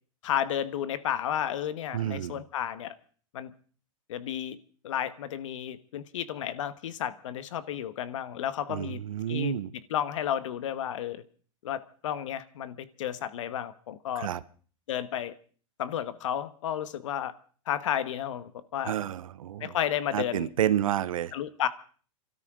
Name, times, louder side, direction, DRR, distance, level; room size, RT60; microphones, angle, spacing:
voice 1, 0.2-3.0 3.3-3.5 4.1-4.6 4.8-9.0 9.3-9.5 9.9-11.2 11.6-14.3 14.9-15.3 15.8-17.3 17.7-18.9 19.6-20.5 21.3-21.7, left 10 dB, 65° left, 1.3 m, -32 dB
voice 2, 1.9-2.4 8.7-9.7 14.2-14.4 18.8-19.7 20.1-21.3, right 11 dB, 85° right, 1.0 m, -30 dB
28.5 x 13.0 x 3.7 m
supercardioid pair, 160°, 17 cm